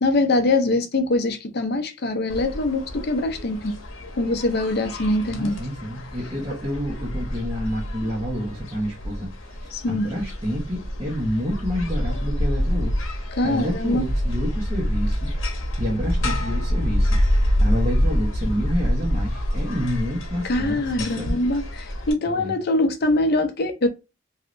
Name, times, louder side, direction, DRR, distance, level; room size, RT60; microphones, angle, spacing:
voice 1, 0.0-3.8 4.2-5.6 9.7-10.1 13.3-14.0 20.4-23.9, left 2 dB, 55° left, 0.6 m, -23 dB
sound 1, 2.3-22.1, equal, 85° left, 0.9 m, -26 dB
voice 2, 5.3-15.4 15.8-17.2 17.6-21.3 22.3-22.5, equal, 25° right, 1.1 m, -29 dB
3.2 x 2.7 x 2.5 m
head